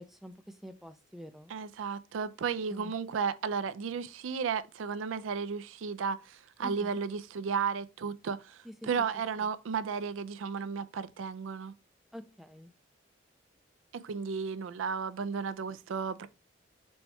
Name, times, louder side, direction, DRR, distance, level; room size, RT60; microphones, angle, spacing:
voice 1, 0.0-1.5 2.7-2.9 6.6-7.0 8.6-9.1 9.4-9.5 12.1-12.7, equal, ahead, 0.3 m, -46 dB
voice 2, 1.5-8.6 8.9-11.7 13.9-16.3, right 6 dB, 90° right, 0.4 m, -34 dB
4.1 x 2.3 x 4.3 m
head